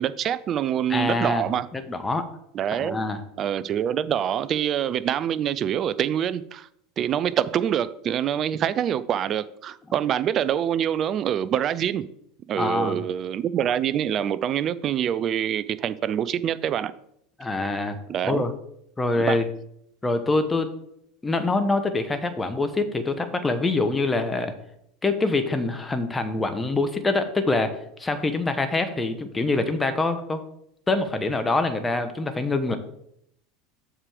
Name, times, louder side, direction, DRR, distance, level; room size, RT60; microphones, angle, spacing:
voice 1, 0.0-1.7 2.5-3.0 3.4-6.7 7.0-12.1 12.5-16.9 18.1-18.4 19.3-19.4, right 9 dB, 40° right, 0.4 m, -25 dB
voice 2, 0.9-2.3 2.7-3.2 12.6-13.0 17.4-18.0 18.2-18.5 19.0-19.5 20.0-20.7 21.2-24.5 25.0-30.4 30.9-32.8, left 2 dB, 15° left, 1.1 m, -25 dB
7.3 x 5.0 x 5.0 m
hypercardioid pair, 85°, 0 cm